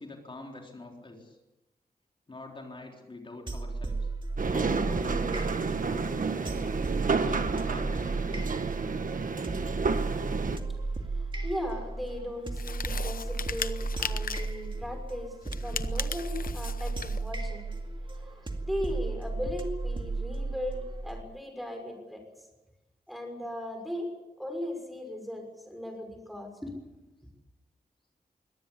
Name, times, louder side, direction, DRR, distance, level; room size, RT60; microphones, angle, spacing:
voice 1, 0.0-1.4 2.3-4.1 4.5-6.5 7.2-8.3, left 2 dB, 35° left, 1 dB, 3.9 m, -45 dB
sound 1, 3.5-21.2, right 3 dB, 30° right, 2.3 m, -34 dB
sound 2, 4.4-10.6, right 4 dB, 55° right, 1.5 m, -30 dB
voice 2, 10.7-17.7 18.0-22.5 23.1-24.1 24.4-26.7, left 1 dB, ahead, 4 dB, 6.1 m, -38 dB
sound 3, 12.5-14.6 15.4-17.2, left 6 dB, 60° left, 0.9 m, -37 dB
23.5 x 18.0 x 8.4 m, 1.0 s
wide cardioid pair, 145°, 16 cm